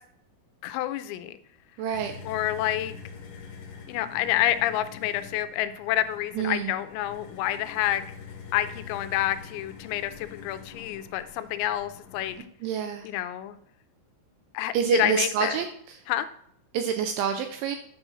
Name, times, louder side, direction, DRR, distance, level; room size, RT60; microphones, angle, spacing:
voice 1, 0.6-1.4 2.2-2.9 3.9-8.0 8.5-12.4 13.0-13.6 14.5-15.6 16.1-16.3, left 13 dB, 85° left, 11 dB, 3.3 m, -28 dB
voice 2, 1.8-2.1 6.4-6.7 12.6-13.1 14.7-15.7 16.7-17.8, right 7 dB, 85° right, 6 dB, 2.7 m, -27 dB
sound 1, 1.9-12.4, left 6 dB, 65° left, 3.0 m, -45 dB
10.0 x 3.8 x 6.3 m, 0.68 s
omnidirectional pair, 6.0 m